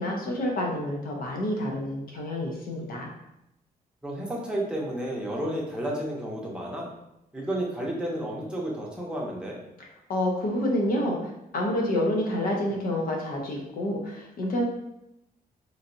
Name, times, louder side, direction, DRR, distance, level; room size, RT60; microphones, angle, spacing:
voice 1, 0.0-3.1 10.1-14.6, left 1 dB, 65° left, 0 dB, 0.7 m, -28 dB
voice 2, 4.0-6.9 7.3-9.6, right 1 dB, 5° right, -3 dB, 0.6 m, -31 dB
3.0 x 2.6 x 2.6 m, 0.85 s
wide cardioid pair, 145°, 16 cm